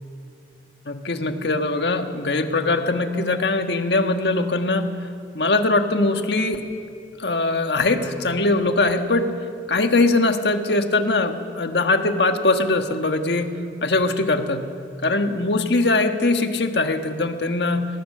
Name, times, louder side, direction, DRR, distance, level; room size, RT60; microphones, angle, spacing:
voice 1, 0.8-4.9 5.3-6.7 7.2-9.3 9.7-13.5 13.8-14.7 15.0-17.9, left 2 dB, 70° left, 6 dB, 1.5 m, -21 dB
20.5 x 19.0 x 6.7 m, 2.3 s
head